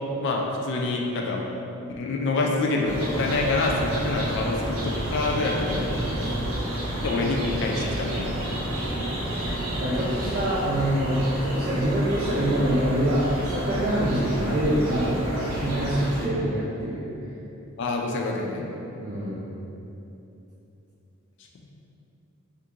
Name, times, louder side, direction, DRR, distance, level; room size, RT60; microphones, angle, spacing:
voice 1, 0.2-1.4 2.0-6.0 7.0-8.4 14.0-14.1 17.8-18.7, left 3 dB, 55° left, 0 dB, 0.3 m, -26 dB
sound 1, 2.8-16.3, right 1 dB, 85° right, 0.7 m, -30 dB
voice 2, 5.9-6.4 8.5-8.9 9.7-17.1 19.0-19.4, right 1 dB, 35° right, -9 dB, 0.4 m, -26 dB
2.8 x 2.4 x 3.5 m, 2.9 s
head